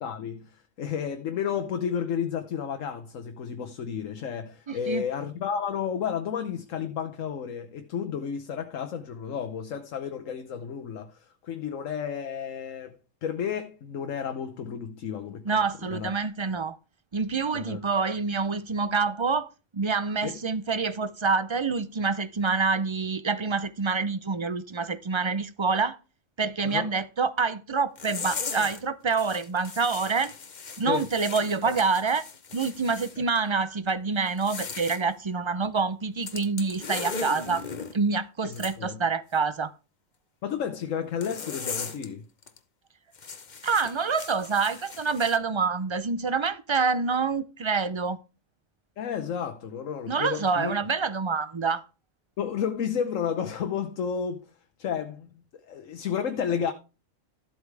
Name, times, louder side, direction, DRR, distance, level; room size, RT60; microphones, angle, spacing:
voice 1, 0.0-12.9 13.2-15.4 15.9-16.1 17.5-17.8 20.2-20.4 26.6-26.9 30.9-31.0 31.6-31.8 33.2-33.3 38.5-39.0 40.4-42.2 49.0-50.7 52.4-54.5 54.8-55.3 55.7-56.7, left 7 dB, 85° left, 1.3 m, -32 dB
voice 2, 4.7-5.0 15.4-16.8 17.1-26.0 26.4-30.3 30.8-32.3 32.5-37.6 37.9-39.7 43.6-48.2 50.1-51.8, right 4 dB, 40° right, 0.4 m, -27 dB
sound 1, 28.0-28.8 29.1-33.2 34.3-35.0 36.2-37.9 38.5-38.7 41.2-42.1 42.4-42.6 43.1-45.4, left 5 dB, 40° left, 1.0 m, -38 dB
13.5 x 8.0 x 3.3 m
omnidirectional pair, 1.3 m